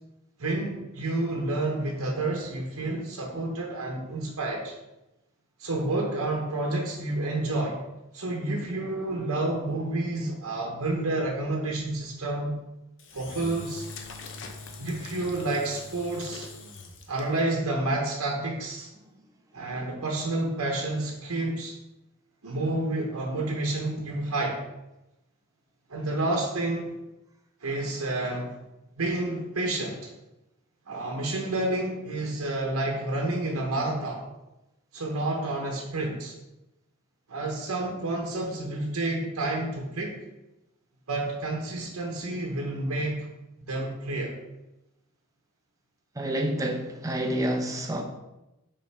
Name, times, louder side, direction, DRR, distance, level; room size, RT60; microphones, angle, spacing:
voice 1, 0.4-4.8 5.6-7.8 8.1-12.6 13.1-13.9 14.8-16.5 17.1-18.9 19.5-21.8 22.4-24.6 25.9-26.9 27.6-28.6 29.0-30.1 30.9-34.2 34.9-36.3 37.3-40.2 41.1-43.3 43.7-44.4, right 2 dB, 90° right, 0.9 m, -29 dB
Engine / Drill, 13.0-17.5, left 3 dB, 60° left, 0.7 m, -43 dB
voice 2, 46.2-48.0, right 1 dB, 15° right, 0.7 m, -28 dB
5.4 x 5.1 x 3.4 m
head